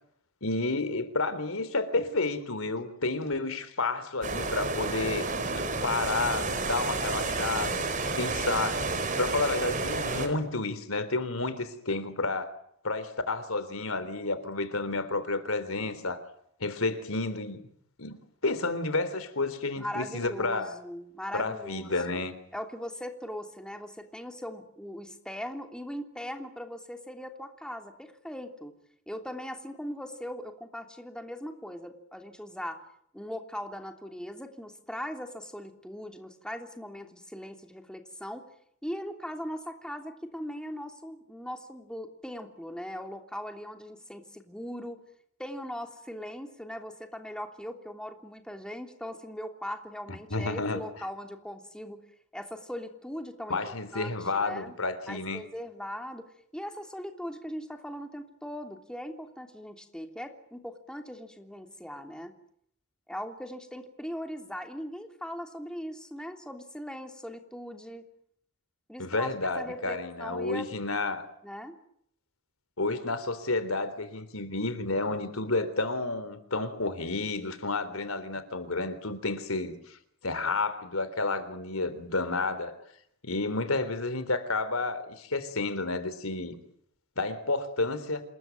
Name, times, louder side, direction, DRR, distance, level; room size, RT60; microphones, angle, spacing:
voice 1, 0.4-5.3 5.6-7.9 8.2-8.8 9.2-12.5 12.8-16.2 16.6-17.6 18.0-20.8 21.3-22.4 50.3-50.8 53.5-55.4 69.0-71.2 72.8-80.0 80.2-82.7 83.2-86.6 87.2-88.2, left 3 dB, 90° left, 3.6 m, -30 dB
sound 1, 4.2-10.3, right 3 dB, 40° right, 4.8 m, -30 dB
voice 2, 19.8-21.9 22.5-28.7 29.1-32.8 33.1-38.5 38.8-45.0 45.4-52.0 52.3-53.6 53.9-54.7 55.1-56.3 56.5-62.3 63.1-68.0 68.9-69.3 69.6-70.7 71.4-71.8, equal, 5° left, 3.1 m, -39 dB
28.0 x 21.5 x 9.3 m
head